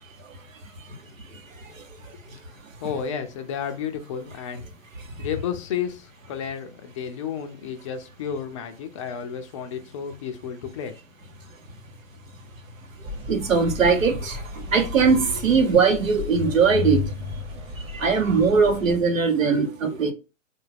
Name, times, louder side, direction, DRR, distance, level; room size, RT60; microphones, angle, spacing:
voice 1, 2.8-4.7 5.2-10.9, left 7 dB, 25° left, 0.4 m, -32 dB
sound 1, 13.0-19.0, left 1 dB, 15° right, 0.9 m, -36 dB
voice 2, 13.3-14.4 14.7-17.0 17.9-20.1, right 5 dB, 90° right, 1.0 m, -20 dB
3.8 x 2.4 x 3.2 m
hypercardioid pair, 130°, 39 cm